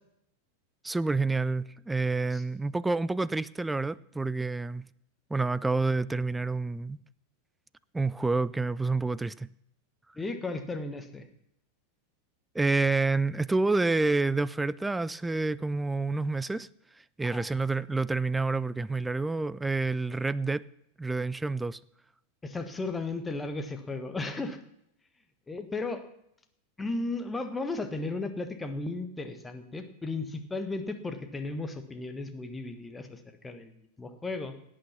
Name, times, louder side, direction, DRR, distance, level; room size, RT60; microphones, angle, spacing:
voice 1, 0.8-4.9 5.3-7.0 7.9-9.5 12.5-16.7 17.2-20.6 21.0-21.8, right 3 dB, 10° right, 0.4 m, -28 dB
voice 2, 10.1-11.2 17.2-17.5 22.4-24.6 25.5-26.0 26.8-34.5, left 3 dB, 10° left, 1.5 m, -35 dB
17.5 x 8.7 x 5.8 m
figure-of-eight pair, 90°, 0 cm